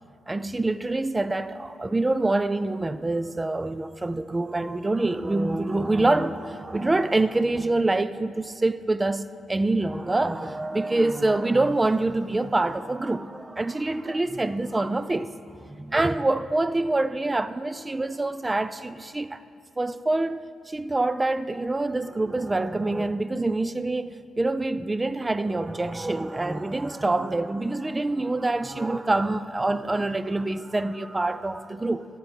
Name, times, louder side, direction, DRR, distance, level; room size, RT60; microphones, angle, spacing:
voice 1, 0.3-19.4 19.8-32.1, right 2 dB, 20° right, 0.3 m, -26 dB
12.5 x 4.5 x 5.3 m
hypercardioid pair, 45°, 0 cm